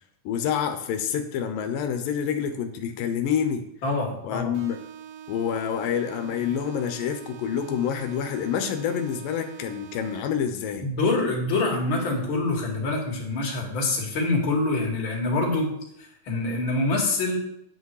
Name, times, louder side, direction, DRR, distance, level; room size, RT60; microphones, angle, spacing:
voice 1, 0.3-3.6 4.2-4.8 5.3-10.9, left 8 dB, 85° left, 7 dB, 2.6 m, -27 dB
voice 2, 3.8-4.5 10.8-15.7 16.3-17.4, left 2 dB, 40° left, -2 dB, 2.9 m, -25 dB
sound 1, 4.5-10.5, right 9 dB, 80° right, 1.4 m, -43 dB
9.3 x 8.3 x 4.8 m, 0.77 s
omnidirectional pair, 3.9 m